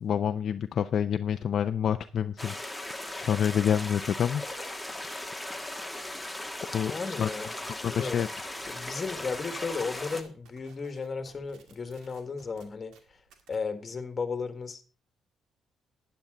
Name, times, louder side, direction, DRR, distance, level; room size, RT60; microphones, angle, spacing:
voice 1, 0.0-2.5 3.2-4.4 6.7-7.3 7.8-8.3, left 8 dB, 60° left, 9 dB, 0.5 m, -27 dB
sound 1, 2.4-10.2, left 1 dB, 5° left, 1.4 m, -38 dB
voice 2, 6.9-7.5 7.8-8.2 8.7-12.9 13.5-14.8, left 4 dB, 35° left, 9 dB, 1.7 m, -34 dB
sound 2, 8.3-13.6, right 5 dB, 85° right, 2.1 m, -58 dB
11.5 x 9.5 x 3.8 m, 0.37 s
cardioid pair, 90°, 0 cm